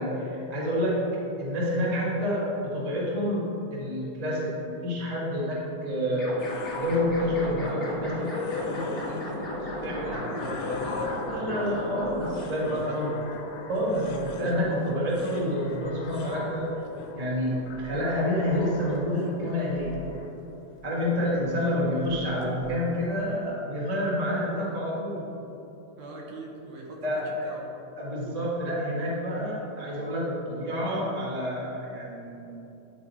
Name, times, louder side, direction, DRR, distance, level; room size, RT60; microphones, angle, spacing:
voice 1, 0.0-6.3 6.8-9.5 9.8-10.2 11.3-13.1 13.7-16.8 17.1-20.0 20.8-25.3 27.0-27.5 28.0-32.5, equal, 35° right, -6 dB, 0.5 m, -28 dB
sound 1, 6.1-12.4, equal, 30° left, 1.6 m, -36 dB
sound 2, 6.4-23.3, left 4 dB, 85° left, 2.2 m, -39 dB
voice 2, 7.3-7.8 10.0-12.0 12.3-13.2 21.3-21.4 26.0-27.8 28.1-28.4, right 3 dB, 70° right, -1 dB, 2.1 m, -41 dB
10.5 x 4.5 x 4.1 m, 2.9 s
omnidirectional pair, 3.7 m